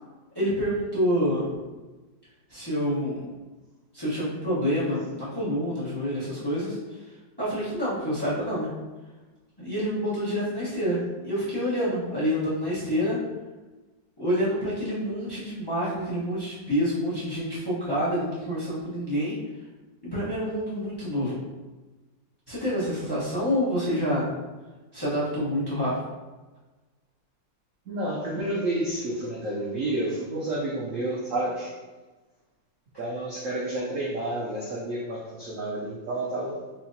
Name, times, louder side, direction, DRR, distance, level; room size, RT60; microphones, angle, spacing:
voice 1, 0.3-1.5 2.5-3.3 3.9-7.0 7.4-8.7 9.6-13.2 14.2-19.3 20.0-21.4 22.5-24.3 24.9-25.9, equal, 20° left, -10 dB, 0.7 m, -27 dB
voice 2, 27.9-31.7 33.0-36.6, right 1 dB, 75° right, -3 dB, 0.7 m, -30 dB
4.2 x 2.7 x 2.6 m, 1.2 s
omnidirectional pair, 2.0 m